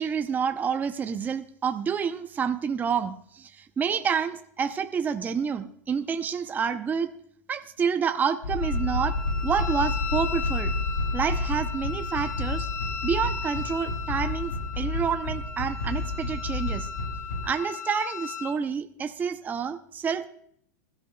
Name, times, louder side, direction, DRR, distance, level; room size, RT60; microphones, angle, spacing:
voice 1, 0.0-7.1 7.5-9.1 9.4-10.7 11.1-12.7 13.0-16.9 17.4-20.3, right 6 dB, 20° right, 8 dB, 0.7 m, -28 dB
sound 1, 8.4-17.5, left 2 dB, 90° left, 6.1 m, -30 dB
Wind instrument woodwind instrument, 8.6-18.6, left 6 dB, 30° left, 1.9 m, -37 dB
21.0 x 13.0 x 2.3 m, 0.66 s
hypercardioid pair, 115°, 9 cm